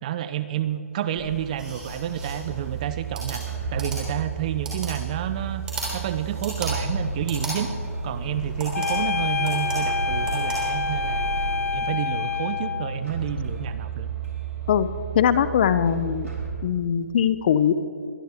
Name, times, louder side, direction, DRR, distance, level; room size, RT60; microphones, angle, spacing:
voice 1, 0.0-3.4 3.7-5.6 5.9-7.7 8.0-11.3 11.7-14.1, right 10 dB, 30° right, 13 dB, 0.5 m, -29 dB
sound 1, 1.2-11.5, right 2 dB, 10° right, 3.3 m, -35 dB
sound 2, 2.2-16.5, right 4 dB, 75° right, 4.3 m, -33 dB
sound 3, 8.7-12.9, left 5 dB, 75° left, 0.8 m, -27 dB
voice 2, 15.1-16.3 16.6-17.7, left 9 dB, 35° left, 13 dB, 0.5 m, -21 dB
22.0 x 11.0 x 3.5 m, 2.2 s
hypercardioid pair, 155°, 8 cm